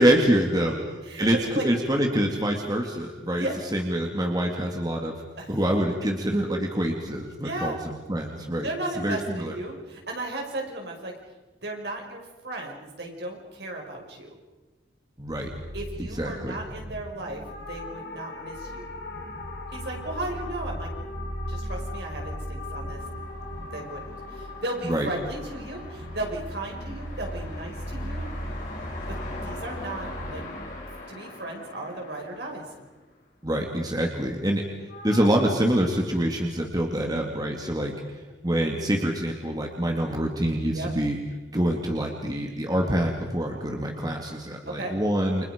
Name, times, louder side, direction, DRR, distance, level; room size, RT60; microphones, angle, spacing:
voice 1, 0.0-0.8 1.2-3.5 3.7-5.1 5.5-8.7 9.0-9.6 15.2-15.5 16.2-16.6 24.8-25.1 33.4-34.6 35.0-37.9 38.4-41.2 41.5-45.5, right 1 dB, 20° right, 1 dB, 2.4 m, -25 dB
voice 2, 0.7-1.3 1.5-1.6 3.4-3.6 5.4-5.5 7.4-7.8 8.6-11.1 11.6-14.4 15.7-18.9 19.7-20.9 21.5-23.0 23.7-28.3 29.1-29.2 29.4-30.4 31.1-32.7 36.9-37.2 40.7-40.9 44.7-44.9, right 2 dB, 65° right, 1 dB, 5.9 m, -35 dB
sound 1, 15.2-31.0, equal, 85° right, 4.3 m, -38 dB
sound 2, 17.4-27.9 34.9-35.3, left 3 dB, 65° left, 4.2 m, -42 dB
sound 3, 23.0-33.2, left 2 dB, 45° left, 6.2 m, -42 dB
29.5 x 26.0 x 5.3 m, 1.2 s
head